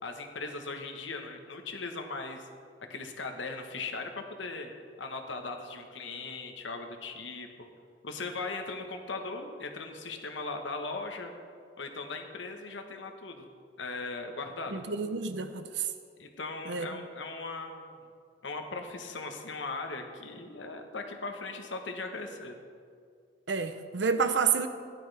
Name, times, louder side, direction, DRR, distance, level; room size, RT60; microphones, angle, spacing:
voice 1, 0.0-2.4 2.9-4.7 5.0-7.7 8.0-11.3 11.8-13.5 13.8-14.8 16.2-18.0 18.4-22.5, left 3 dB, 85° left, 4 dB, 1.3 m, -38 dB
voice 2, 14.7-15.6 16.7-16.9 23.5-24.7, right 5 dB, 75° right, 9 dB, 0.8 m, -29 dB
16.0 x 11.5 x 3.4 m, 2.2 s
head